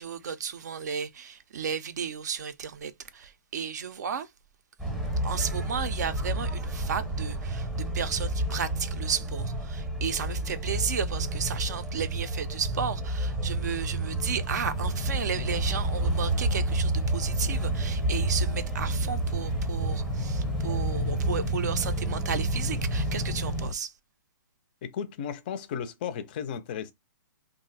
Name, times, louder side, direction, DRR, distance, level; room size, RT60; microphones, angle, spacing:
voice 1, 0.0-4.3 5.2-23.9, right 7 dB, 55° right, 0.5 m, -33 dB
sound 1, 4.8-23.7, right 1 dB, 5° right, 0.7 m, -30 dB
sound 2, 14.7-23.7, left 6 dB, 90° left, 0.5 m, -41 dB
voice 2, 24.8-26.9, left 8 dB, 30° left, 0.4 m, -34 dB
2.4 x 2.0 x 3.9 m
hypercardioid pair, 165°, 11 cm